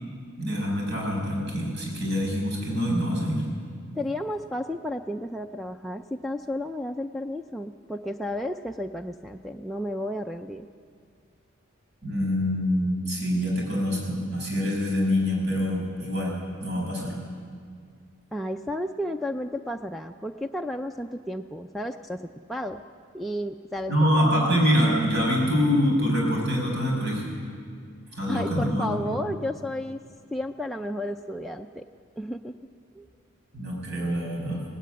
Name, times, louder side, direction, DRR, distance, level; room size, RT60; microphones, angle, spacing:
voice 1, 0.4-3.4 12.0-17.2 23.9-27.2 28.2-29.1 33.5-34.6, equal, 60° right, -1 dB, 6.3 m, -25 dB
voice 2, 4.0-10.7 18.3-22.8 23.1-23.9 28.3-30.0 30.3-31.8 32.2-32.6 32.9-33.1, left 1 dB, ahead, 2 dB, 0.4 m, -32 dB
18.0 x 16.0 x 9.4 m, 2.2 s
head